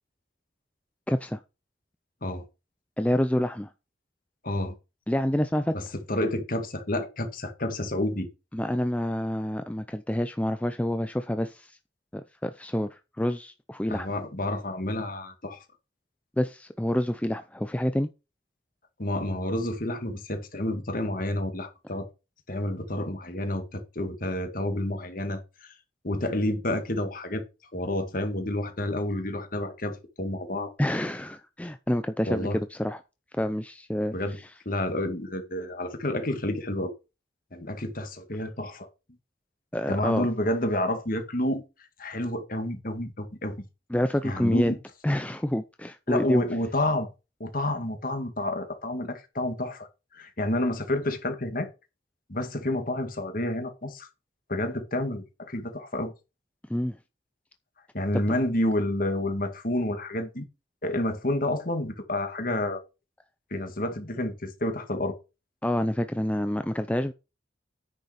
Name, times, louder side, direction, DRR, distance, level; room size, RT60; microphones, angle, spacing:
voice 1, 1.1-1.4 3.0-3.7 5.1-5.8 8.5-11.8 12.1-14.1 16.4-18.1 30.8-33.0 33.4-34.5 39.7-40.3 43.9-44.7 45.0-46.4 56.7-57.0 58.1-58.2 65.6-67.1, left 1 dB, 5° left, 0.5 m, -27 dB
voice 2, 4.4-4.7 5.7-8.3 13.9-15.6 19.0-22.1 22.5-25.7 26.0-27.4 27.7-30.7 32.3-32.6 34.1-34.4 34.7-36.9 37.5-38.9 39.9-41.6 42.0-43.5 44.2-44.8 46.1-47.1 47.4-49.9 50.1-51.7 52.3-54.1 54.5-56.1 57.9-60.5 60.8-62.8 63.5-65.2, left 1 dB, 45° left, 2.0 m, -29 dB
9.7 x 6.7 x 5.1 m
head